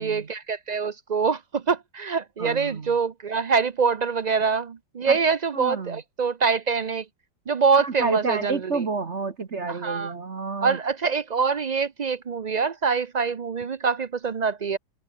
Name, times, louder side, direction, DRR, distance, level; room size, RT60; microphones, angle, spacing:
voice 1, 0.0-7.1 7.5-8.8 9.7-10.1 10.6-14.8, right 5 dB, 80° right, 0.3 m, -25 dB
voice 2, 2.4-2.9 5.1-5.2 5.5-6.0 7.8-10.8, right 4 dB, 45° right, 1.6 m, -29 dB
omnidirectional pair, 1.8 m